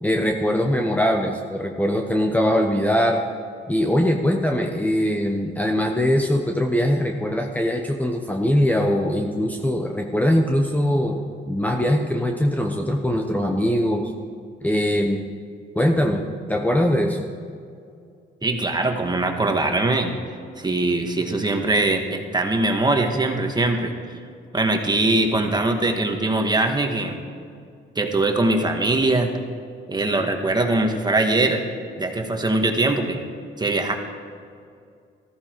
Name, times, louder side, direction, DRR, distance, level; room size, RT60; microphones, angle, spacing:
voice 1, 0.0-3.2 3.7-14.1 14.6-15.2 15.7-17.3, equal, 10° left, 2 dB, 1.0 m, -22 dB
voice 2, 18.4-20.2 20.6-24.2 24.5-27.2 28.0-29.3 29.9-31.6 32.0-33.2 33.6-34.0, right 2 dB, 20° right, 4 dB, 1.7 m, -22 dB
14.0 x 14.0 x 4.7 m, 2.4 s
cardioid pair, 90°, 20 cm